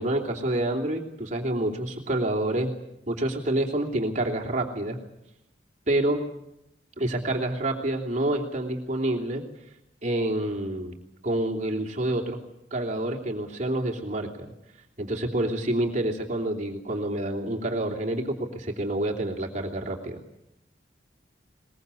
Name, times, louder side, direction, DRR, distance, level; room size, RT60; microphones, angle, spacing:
voice 1, 0.0-2.7 3.1-5.0 5.9-6.2 7.0-9.4 10.0-10.9 11.2-12.4 12.7-14.5 15.0-20.2, right 1 dB, 40° right, 1 dB, 3.1 m, -28 dB
22.0 x 21.0 x 8.4 m, 0.86 s
head